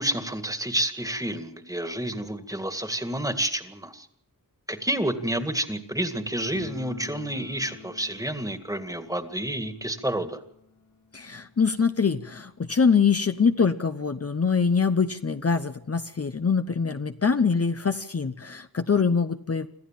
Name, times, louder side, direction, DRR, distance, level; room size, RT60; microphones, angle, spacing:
voice 1, 0.0-4.1 4.7-10.4, right 1 dB, 10° right, 8 dB, 2.0 m, -29 dB
sound 1, 6.5-13.2 13.5-13.6 13.8-13.9 14.7-14.8 15.1-16.3, left 4 dB, 85° left, 8.0 m, -48 dB
voice 2, 11.1-19.7, left 5 dB, 40° left, 8 dB, 0.9 m, -24 dB
26.5 x 14.0 x 7.5 m, 0.74 s
wide cardioid pair, 80°, 36 cm